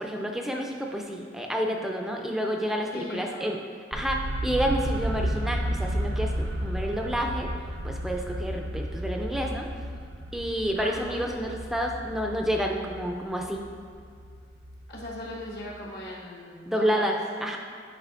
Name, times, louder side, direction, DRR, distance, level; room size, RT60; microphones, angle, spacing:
voice 1, 0.0-3.6 3.9-7.5 7.8-9.7 10.3-13.7 16.7-17.6, equal, ahead, 1 dB, 0.3 m, -29 dB
voice 2, 2.9-3.6 10.7-11.2 14.9-17.1, left 1 dB, 65° left, -4 dB, 1.2 m, -38 dB
sound 1, 3.9-15.7, equal, 80° right, 0.6 m, -33 dB
9.8 x 4.8 x 2.5 m, 2.2 s
head